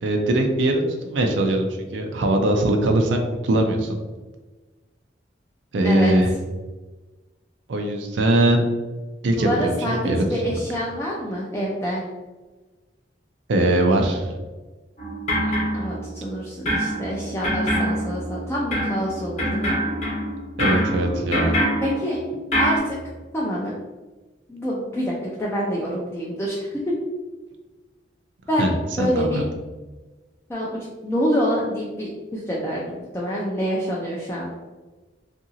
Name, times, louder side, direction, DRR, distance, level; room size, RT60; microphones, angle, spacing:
voice 1, 0.0-3.9 5.7-6.3 7.7-8.6 9.2-10.2 13.5-14.3 20.6-21.6 28.6-28.7 29.0-29.5, right 1 dB, 80° right, 4 dB, 0.4 m, -21 dB
voice 2, 9.3-12.0 15.4-19.7 21.8-22.2 22.6-23.0 23.3-23.7 24.5-26.9 28.5-28.7 29.0-29.5 30.5-34.5, equal, 15° left, -5 dB, 0.3 m, -26 dB
sound 1, 15.0-16.3 16.7-22.8, equal, 40° left, 0.8 m, -25 dB
2.8 x 2.5 x 2.7 m, 1.2 s
head